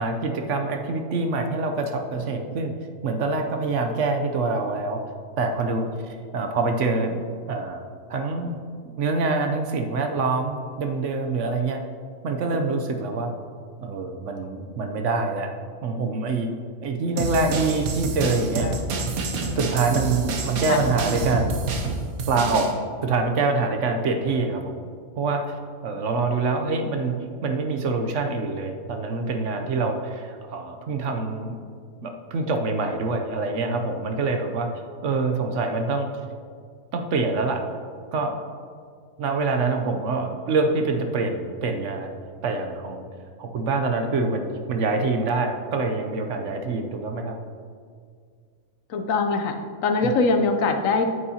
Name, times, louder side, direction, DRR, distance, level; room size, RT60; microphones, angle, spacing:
voice 1, 0.0-2.7 3.0-5.0 5.4-7.2 7.5-7.8 8.1-11.8 12.2-13.3 13.8-15.5 15.8-16.5 16.8-18.7 19.5-21.6 22.3-22.8 23.0-24.8 25.2-27.2 27.4-31.6 32.0-36.1 36.9-37.6 38.1-38.4 39.2-42.2 42.4-43.0 43.4-47.4 50.0-50.1, right 3 dB, 65° right, 5 dB, 0.9 m, -25 dB
sound 1, 17.2-22.7, right 3 dB, 85° right, 1.3 m, -28 dB
voice 2, 48.9-51.0, left 3 dB, 70° left, 6 dB, 1.1 m, -23 dB
9.3 x 8.3 x 2.8 m, 2.1 s
omnidirectional pair, 1.5 m